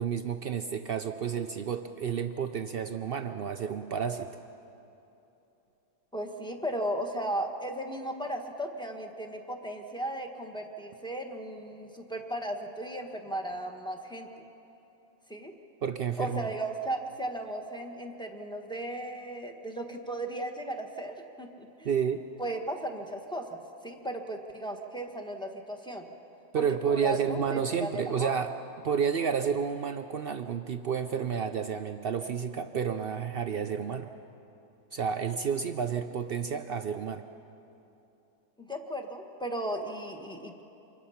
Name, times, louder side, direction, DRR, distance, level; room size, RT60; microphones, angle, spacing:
voice 1, 0.0-4.4 15.8-16.5 21.8-22.2 26.5-28.5 28.8-34.1 34.9-37.3, right 7 dB, 90° right, 8 dB, 0.5 m, -30 dB
voice 2, 6.1-14.3 15.3-15.5 16.2-21.9 22.4-26.1 26.6-28.3 38.6-40.6, right 1 dB, 5° left, 3 dB, 1.3 m, -36 dB
26.0 x 22.5 x 5.7 m, 2.9 s
omnidirectional pair, 1.8 m